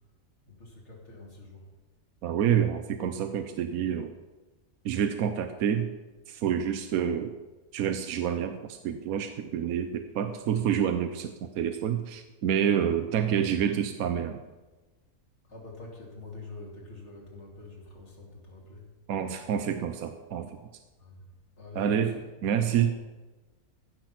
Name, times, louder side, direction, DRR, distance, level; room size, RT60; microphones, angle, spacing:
voice 1, 0.5-1.7 13.1-13.6 15.4-18.9 21.0-21.3 21.6-22.9, left 2 dB, 50° left, -2 dB, 2.7 m, -46 dB
voice 2, 2.2-4.2 4.8-5.9 6.3-7.4 7.7-14.4 19.1-20.6 21.7-22.1 22.4-22.9, right 9 dB, 75° right, 7 dB, 1.1 m, -28 dB
15.5 x 6.0 x 5.8 m, 1.2 s
omnidirectional pair, 1.5 m